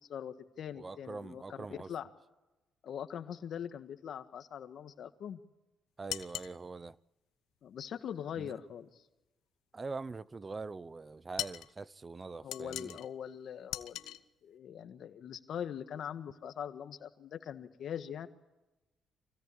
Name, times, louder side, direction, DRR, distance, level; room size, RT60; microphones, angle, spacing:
voice 1, 0.0-1.6 1.9-2.1 2.8-5.4 7.6-8.9 12.4-18.3, left 8 dB, 65° left, 1.7 m, -42 dB
voice 2, 0.8-1.9 6.0-7.0 8.4-8.5 9.7-13.0, right 3 dB, 30° right, 0.7 m, -43 dB
sound 1, 6.1-6.6 11.4-11.7 12.5-13.1 13.7-14.2, left 12 dB, 85° left, 0.9 m, -39 dB
25.0 x 16.5 x 8.6 m
cardioid pair, 90°, 0 cm